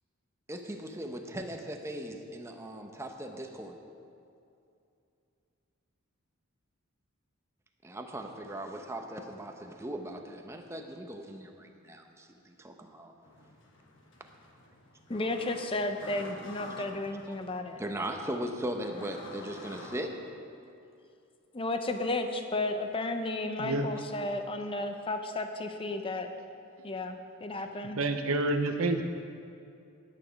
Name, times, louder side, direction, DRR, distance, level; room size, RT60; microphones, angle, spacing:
voice 1, 0.5-3.8 7.8-13.1 17.8-20.1, right 1 dB, 15° right, 4 dB, 0.7 m, -38 dB
sound 1, 13.2-20.0, left 2 dB, 60° left, 1.3 m, -49 dB
voice 2, 15.1-17.8 21.5-26.3 26.8-28.0, left 2 dB, 25° left, 6 dB, 0.7 m, -33 dB
voice 3, 23.6-23.9 27.6-29.0, right 2 dB, 75° right, 6 dB, 0.6 m, -29 dB
9.8 x 9.5 x 5.2 m, 2.6 s
head